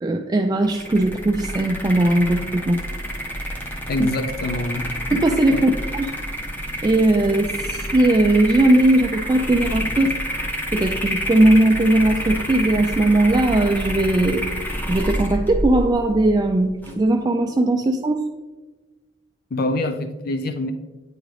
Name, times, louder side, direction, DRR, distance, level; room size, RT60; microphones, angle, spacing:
voice 1, 0.0-2.8 5.1-6.1 6.8-10.1 10.7-14.5 14.9-18.2, right 1 dB, 20° right, 4 dB, 0.3 m, -18 dB
sound 1, 0.6-17.0, equal, 10° left, 0.8 m, -28 dB
voice 2, 3.9-4.9 5.5-5.6 19.5-20.7, left 2 dB, 55° left, 8 dB, 0.4 m, -25 dB
9.2 x 3.8 x 3.2 m, 1.2 s
head